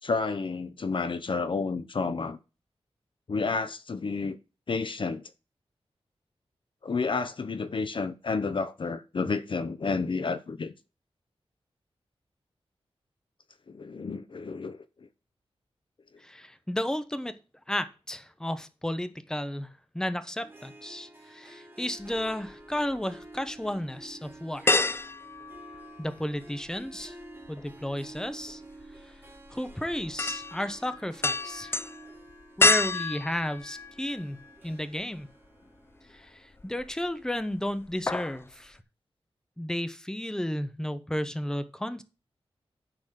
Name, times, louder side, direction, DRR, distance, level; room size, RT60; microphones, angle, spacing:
voice 1, 0.0-2.4 3.3-4.4 4.7-5.2 6.8-10.7 13.7-14.8, left 4 dB, 55° left, 0.7 m, -30 dB
voice 2, 16.2-17.3 17.7-19.7 19.9-24.8 26.0-27.2 27.5-28.6 29.5-31.7 32.6-34.4 34.6-35.3 36.1-38.8 39.6-42.0, left 1 dB, 5° left, 0.9 m, -33 dB
Harp, 20.4-36.9, right 2 dB, 20° right, 1.7 m, -50 dB
sound 1, 22.0-23.0 23.5-23.6 24.7-26.4 26.7-34.6 35.0-35.1 36.5-37.1 37.4-37.6 37.9-38.4 38.7-38.8, left 3 dB, 25° left, 0.3 m, -29 dB
9.8 x 4.2 x 6.6 m
wide cardioid pair, 100°, 11 cm